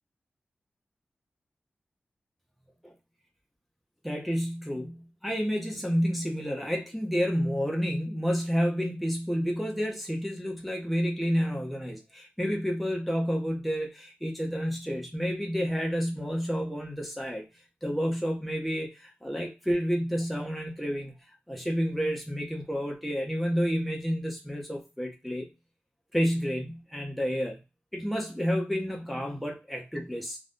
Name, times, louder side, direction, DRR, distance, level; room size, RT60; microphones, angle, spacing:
voice 1, 4.0-17.4 17.8-21.1 21.5-25.5 26.1-27.6 27.9-30.4, equal, ahead, 0.6 m, -30 dB
2.5 x 2.2 x 3.4 m
wide cardioid pair, 165°, 4 cm